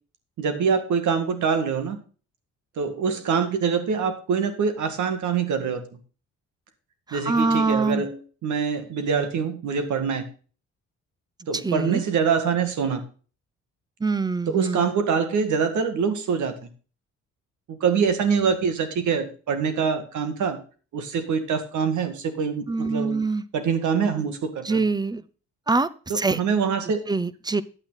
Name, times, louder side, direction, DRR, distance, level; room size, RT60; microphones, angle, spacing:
voice 1, 0.4-2.0 2.8-5.8 7.1-10.3 11.5-13.0 14.5-16.6 17.8-20.6 20.9-23.2 23.5-24.8 26.1-27.0, right 6 dB, 75° right, 9 dB, 2.0 m, -24 dB
voice 2, 7.1-8.0 11.6-12.0 14.0-14.9 22.7-23.4 24.6-25.2 25.7-25.9 26.1-26.4 27.1-27.6, right 3 dB, 15° right, 18 dB, 0.6 m, -24 dB
9.9 x 8.5 x 4.0 m, 0.37 s
cardioid pair, 90°, 30 cm